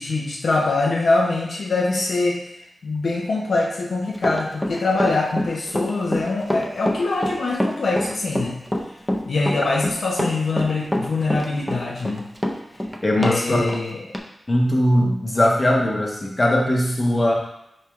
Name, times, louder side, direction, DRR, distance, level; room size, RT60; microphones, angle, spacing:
voice 1, 0.0-2.4 2.8-8.6 9.3-12.2 13.2-14.1, left 3 dB, 75° left, -2 dB, 0.6 m, -23 dB
Run, 4.2-13.4 13.7-13.8 14.1-14.2, equal, 5° left, 0.5 m, -25 dB
voice 2, 13.0-13.7 14.5-17.3, left 1 dB, 30° left, -1 dB, 0.9 m, -19 dB
4.3 x 3.2 x 3.5 m, 0.81 s
wide cardioid pair, 70°, 0 cm